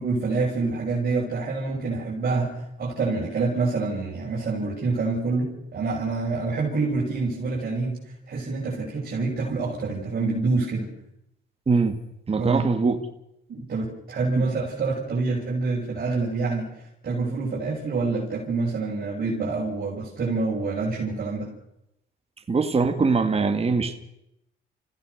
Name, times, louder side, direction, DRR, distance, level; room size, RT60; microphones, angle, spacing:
voice 1, 0.0-8.0 8.3-10.9 12.3-12.6 13.5-21.5, right 3 dB, 50° right, -5 dB, 6.7 m, -27 dB
voice 2, 12.3-13.0 14.4-14.5 22.5-23.9, right 4 dB, 30° right, 6 dB, 2.2 m, -22 dB
29.0 x 16.5 x 6.8 m, 0.83 s
cardioid pair, 90°, 20 cm